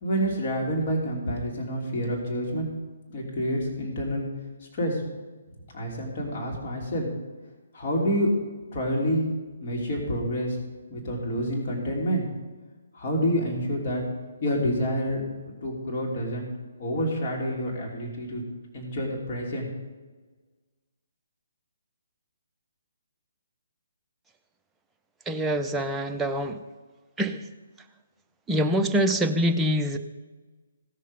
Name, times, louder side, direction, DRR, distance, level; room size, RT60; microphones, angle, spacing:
voice 1, 0.0-2.7 3.1-4.2 4.7-5.0 5.7-7.1 7.7-8.3 8.7-9.2 9.6-10.6 10.9-12.3 12.9-14.0 14.4-16.5 16.8-18.4 18.7-19.7, equal, 40° left, -2 dB, 2.9 m, -28 dB
voice 2, 25.3-26.6 27.2-27.5 28.5-30.0, equal, 10° right, 4 dB, 0.7 m, -25 dB
16.5 x 6.6 x 5.1 m, 1.3 s
figure-of-eight pair, 135°, 0 cm